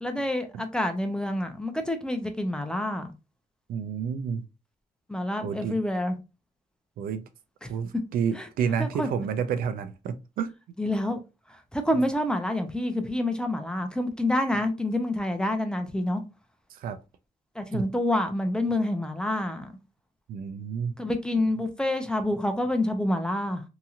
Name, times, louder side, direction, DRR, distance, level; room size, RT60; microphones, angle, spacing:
voice 1, 0.0-3.1 5.1-6.2 7.6-7.7 8.3-8.5 8.8-9.1 10.8-11.2 11.5-16.2 17.6-19.8 21.0-23.6, left 1 dB, 5° left, 0.6 m, -27 dB
voice 2, 3.7-4.4 5.4-5.8 7.0-7.2 7.7-10.5 16.7-17.0 17.7-17.8 20.3-20.9, right 7 dB, 75° right, 0.5 m, -30 dB
2.9 x 2.7 x 2.4 m
cardioid pair, 95°, 15 cm